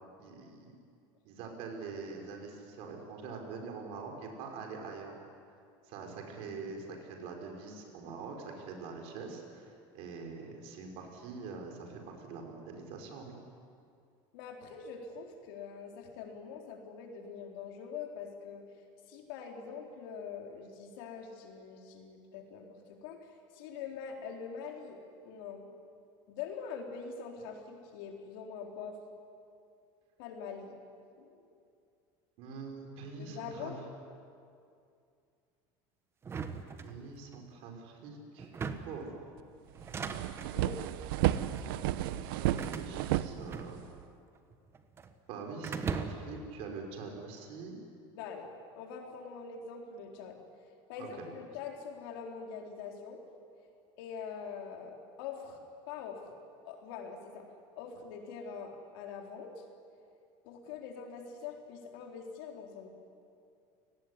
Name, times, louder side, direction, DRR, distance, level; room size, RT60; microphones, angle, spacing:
voice 1, 0.2-0.7 1.2-5.2 5.8-13.4 32.4-33.7 36.8-38.5 38.8-39.1 41.3-43.8 45.3-47.8 51.0-51.1, right 4 dB, 60° right, 2 dB, 5.7 m, -44 dB
voice 2, 14.3-18.7 19.1-25.7 26.3-29.0 30.2-30.8 31.2-31.5 33.2-33.9 40.5-40.9 48.2-50.4 50.9-53.2 54.0-55.6 55.9-56.2 56.6-57.5 57.8-59.6 60.4-62.9, left 6 dB, 80° left, 1 dB, 4.2 m, -44 dB
sound 1, 36.2-37.4 38.4-39.1 39.7-40.6 41.4-41.7 42.6-44.1 44.4-45.1 45.6-46.4, right 5 dB, 20° right, 1.4 m, -39 dB
sound 2, 39.4-39.5 39.8-44.0, right 13 dB, 90° right, 1.0 m, -32 dB
29.5 x 18.5 x 9.9 m, 2.4 s
cardioid pair, 155°, 12 cm